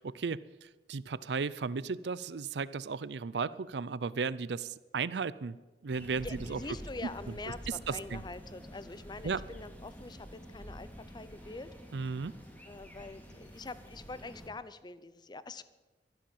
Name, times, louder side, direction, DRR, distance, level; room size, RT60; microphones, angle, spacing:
voice 1, 0.0-5.6 5.8-6.6 7.9-8.2 9.2-9.4 11.9-12.3, right 5 dB, 70° right, 18 dB, 0.5 m, -35 dB
sound 1, 5.9-14.5, equal, 10° left, 2.3 m, -48 dB
voice 2, 6.2-11.7 12.7-15.6, left 3 dB, 25° left, 15 dB, 0.6 m, -44 dB
13.0 x 11.5 x 7.3 m, 1.3 s
head